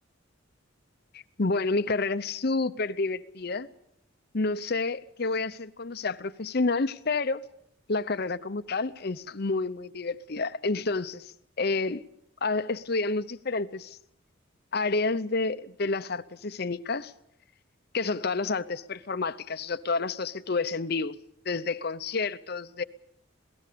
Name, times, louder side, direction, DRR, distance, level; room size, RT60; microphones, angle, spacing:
voice 1, 1.1-3.7 4.3-7.4 7.9-11.3 11.6-12.0 12.4-14.0 14.7-17.1 17.9-21.2 21.4-22.8, left 3 dB, 50° left, 0.8 m, -29 dB
26.5 x 18.0 x 6.8 m
head